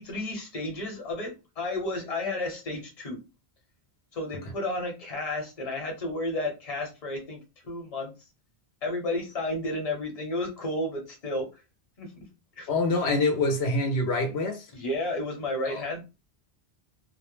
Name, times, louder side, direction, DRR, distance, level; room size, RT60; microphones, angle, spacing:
voice 1, 0.0-3.2 4.1-7.4 7.6-8.1 8.8-11.5 12.0-12.1 12.6-12.7 14.7-16.1, left 1 dB, 40° left, 0.9 m, -32 dB
voice 2, 12.7-14.6 15.6-15.8, left 2 dB, 85° left, 0.9 m, -25 dB
2.2 x 2.1 x 3.0 m
omnidirectional pair, 1.1 m